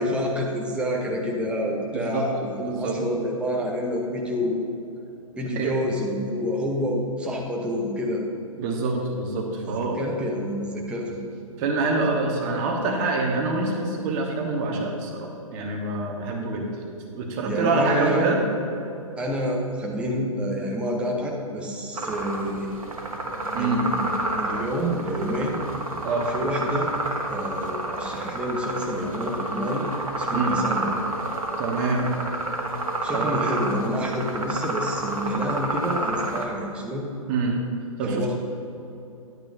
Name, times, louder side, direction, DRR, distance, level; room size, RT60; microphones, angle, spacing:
voice 1, 0.0-4.7 5.4-8.2 9.6-11.2 17.4-18.3 19.2-22.7 23.4-25.6 26.3-26.9 27.3-29.9 30.2-30.9 33.0-37.1 38.0-38.4, equal, 5° right, -1 dB, 0.9 m, -28 dB
voice 2, 2.6-3.0 5.5-5.7 8.6-10.0 11.6-16.7 17.1-18.4 23.5-23.8 26.0-26.3 30.3-30.6 31.6-32.1 33.1-33.4 37.3-37.6 38.0-38.2, right 3 dB, 30° right, 1 dB, 1.3 m, -26 dB
sound 1, 22.0-36.4, right 2 dB, 75° right, 1.4 m, -29 dB
10.5 x 8.9 x 2.7 m, 2.8 s
figure-of-eight pair, 125°, 18 cm